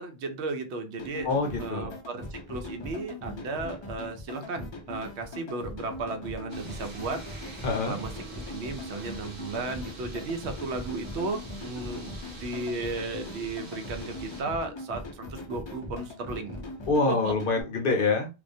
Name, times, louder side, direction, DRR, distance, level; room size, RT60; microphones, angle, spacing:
voice 1, 0.0-1.3 1.6-7.5 7.8-8.1 8.5-16.7 17.1-17.3, right 3 dB, 85° right, 6 dB, 0.9 m, -35 dB
sound 1, 1.0-17.6, left 1 dB, 40° left, 0.4 m, -41 dB
voice 2, 1.2-1.9 7.6-8.0 16.9-18.3, left 3 dB, 60° left, 3 dB, 0.8 m, -26 dB
sound 2, 6.5-14.4, right 2 dB, 35° right, 0.6 m, -45 dB
2.3 x 2.2 x 2.5 m, 0.27 s
omnidirectional pair, 1.1 m